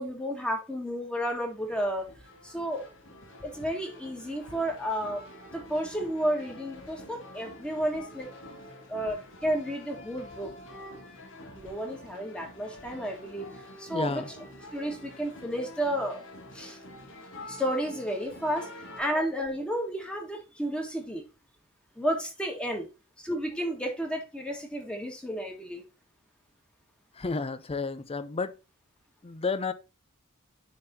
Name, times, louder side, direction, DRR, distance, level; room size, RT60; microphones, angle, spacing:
voice 1, 0.0-2.1 2.4-2.9 3.4-5.2 5.5-8.3 8.9-10.5 11.6-14.2 14.7-16.2 16.5-16.8 17.5-18.7 19.0-21.2 21.9-22.9 23.2-25.8, equal, 5° left, 1.5 m, -32 dB
sound 1, 1.3-19.0, left 1 dB, 60° left, 1.7 m, -47 dB
voice 2, 13.9-14.3 27.1-28.6 29.2-29.7, left 4 dB, 25° left, 0.5 m, -31 dB
10.5 x 3.6 x 2.7 m
head